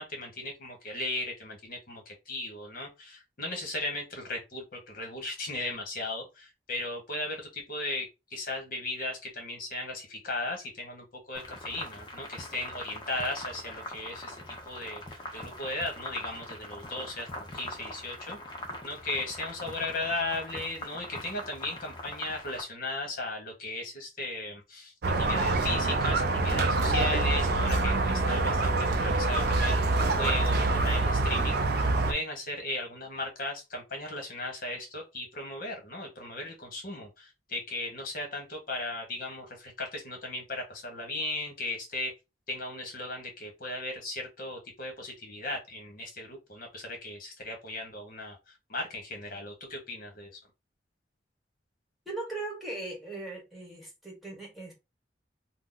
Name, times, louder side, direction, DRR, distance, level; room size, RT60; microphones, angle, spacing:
voice 1, 0.0-18.4 18.8-42.1 42.5-50.4, left 2 dB, 55° left, 1.2 m, -36 dB
sound 1, 11.3-22.6, left 1 dB, 25° left, 0.8 m, -42 dB
Squeak, 25.0-32.1, right 2 dB, 60° right, 0.5 m, -26 dB
voice 2, 52.0-54.7, right 2 dB, ahead, 1.3 m, -39 dB
2.9 x 2.0 x 3.8 m
head